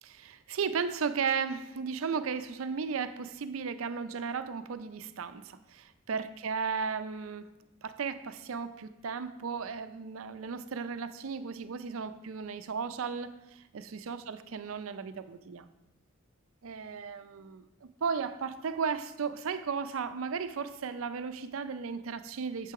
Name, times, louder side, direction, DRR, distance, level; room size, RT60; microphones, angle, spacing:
voice 1, 0.0-7.5 7.8-15.7 16.6-22.7, right 5 dB, 80° right, 11 dB, 0.5 m, -35 dB
8.9 x 6.7 x 4.7 m, 0.96 s
head